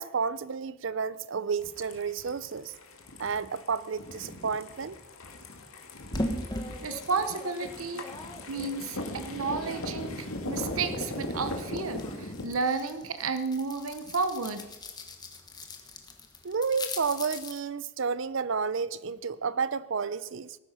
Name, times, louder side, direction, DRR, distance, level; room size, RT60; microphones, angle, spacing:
voice 1, 0.0-2.7 3.2-5.0 16.4-20.6, right 5 dB, 60° right, 0.6 m, -31 dB
sound 1, 1.6-12.4, left 1 dB, 90° left, 2.0 m, -39 dB
sound 2, 6.1-10.0 10.4-17.6, left 1 dB, 20° left, 1.4 m, -40 dB
voice 2, 6.8-8.0 8.5-14.7, right 4 dB, 85° right, 0.9 m, -32 dB
18.0 x 9.6 x 5.7 m
head